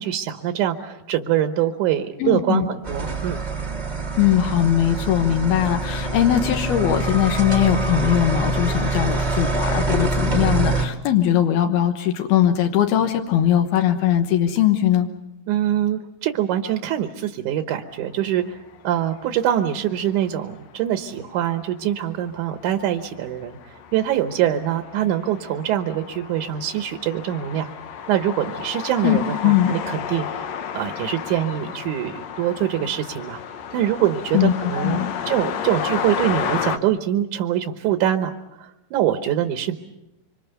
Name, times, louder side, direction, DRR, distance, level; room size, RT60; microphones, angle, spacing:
voice 1, 0.0-3.4 15.5-18.6 18.8-27.7 28.1-33.4 33.7-38.3 38.6-39.8, right 11 dB, 70° right, 7 dB, 2.3 m, -24 dB
voice 2, 2.2-2.7 4.2-15.1 29.0-29.7 34.3-35.1, left 11 dB, 85° left, 5 dB, 3.1 m, -20 dB
sound 1, 2.8-10.8, right 2 dB, 25° right, 1.0 m, -25 dB
sound 2, 18.4-18.8 19.4-20.3 20.7-20.8 21.2-36.8, left 7 dB, 70° left, 1.7 m, -32 dB
26.5 x 25.5 x 6.9 m, 0.90 s
omnidirectional pair, 4.3 m